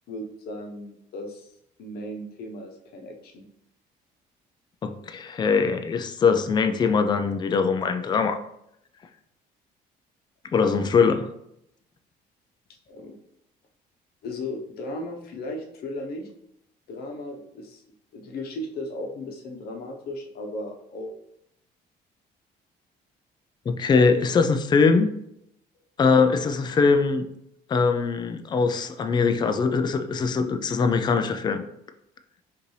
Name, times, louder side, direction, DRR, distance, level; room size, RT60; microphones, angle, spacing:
voice 1, 0.1-1.5 1.8-3.4 12.9-13.1 14.2-16.3 16.9-17.8 18.1-21.1, left 1 dB, 65° left, 2 dB, 0.9 m, -36 dB
voice 2, 4.8-8.4 10.5-11.3 23.7-25.1 26.0-27.2 27.7-31.6, left 5 dB, 25° left, 7 dB, 0.4 m, -22 dB
5.1 x 2.6 x 3.2 m, 0.77 s
cardioid pair, 110°, 17 cm